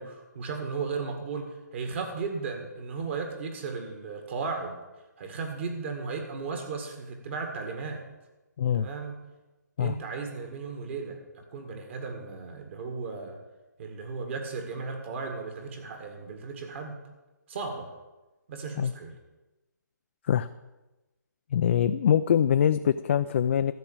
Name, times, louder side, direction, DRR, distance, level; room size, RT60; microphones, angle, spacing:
voice 1, 0.0-1.5 1.7-4.8 5.2-8.0 8.7-9.2 9.8-11.2 11.5-13.4 13.8-17.0 17.5-17.9 18.5-19.2, right 4 dB, 40° right, 4 dB, 2.0 m, -35 dB
voice 2, 21.5-23.7, left 9 dB, 40° left, 10 dB, 0.4 m, -23 dB
13.5 x 6.0 x 8.8 m, 1.1 s
hypercardioid pair, 155°, 10 cm